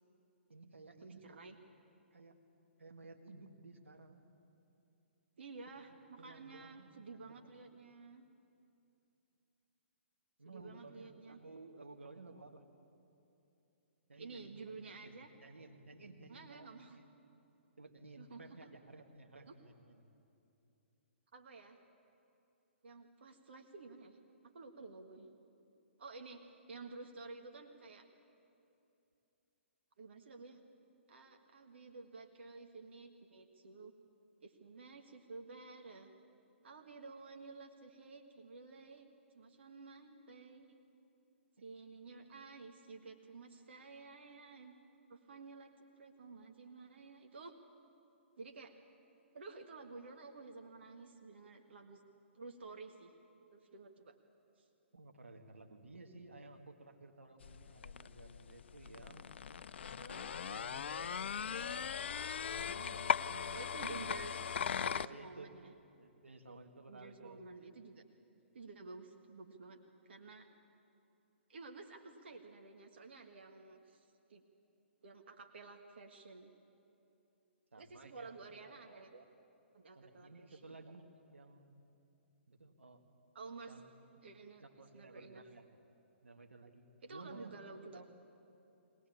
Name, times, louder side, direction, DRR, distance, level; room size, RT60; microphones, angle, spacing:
voice 1, 0.5-1.5 2.1-2.4 2.8-4.2 5.8-7.5 10.4-12.6 14.1-17.1 17.8-20.1 54.9-59.3 60.0-61.9 62.5-65.5 66.0-67.4 77.7-78.4 79.9-81.7 82.5-83.0 83.7-83.8 84.2-84.3 84.6-85.7 86.2-88.1, right 3 dB, 85° right, 5 dB, 1.8 m, -55 dB
voice 2, 1.0-1.6 5.4-8.2 10.4-11.4 14.2-15.3 16.3-17.0 18.2-18.7 19.4-19.5 21.3-21.8 22.8-24.2 24.5-25.3 26.0-28.0 30.0-30.6 31.1-33.9 34.4-36.1 36.6-39.1 39.3-40.8 41.6-44.7 45.1-45.7 46.0-47.6 48.4-48.7 49.3-52.0 52.3-53.1 53.5-54.1 54.6-54.7 63.5-65.7 66.9-68.0 68.5-69.8 70.1-70.5 71.5-74.4 75.0-76.5 77.8-79.3 79.7-80.8 83.3-83.7 84.2-84.7 84.9-85.4 87.0-88.0, right 4 dB, 65° right, 4 dB, 1.7 m, -52 dB
sound 1, 57.4-65.1, left 7 dB, 65° left, 0.5 m, -39 dB
21.5 x 18.5 x 8.6 m, 2.8 s
figure-of-eight pair, 125°, 7 cm